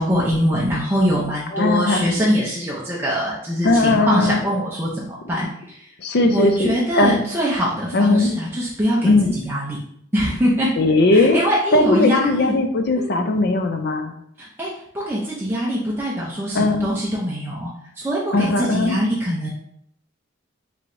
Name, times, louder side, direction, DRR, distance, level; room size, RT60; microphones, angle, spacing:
voice 1, 0.0-5.9 6.2-9.8 10.1-10.7 11.1-12.6 13.0-13.1 14.4-19.5, equal, 10° right, -6 dB, 0.6 m, -23 dB
voice 2, 1.5-2.1 3.6-4.4 6.0-7.2 7.9-8.3 9.0-9.3 10.8-11.4 11.7-14.1 16.5-16.9 18.3-19.0, left 2 dB, 50° left, 6 dB, 0.5 m, -18 dB
4.6 x 3.1 x 2.6 m, 0.71 s
head